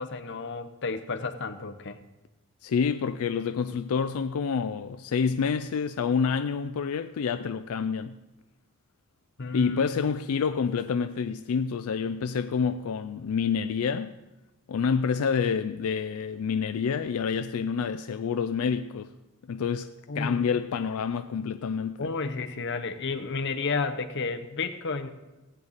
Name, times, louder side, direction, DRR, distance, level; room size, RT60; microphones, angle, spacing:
voice 1, 0.0-2.0 9.4-9.9 20.1-20.5 20.7-20.9 22.0-25.1, left 4 dB, 55° left, 0.8 m, -32 dB
voice 2, 2.6-8.2 9.5-14.1 14.7-19.1 19.5-22.1, left 6 dB, 80° left, 0.4 m, -28 dB
17.0 x 8.6 x 4.1 m
head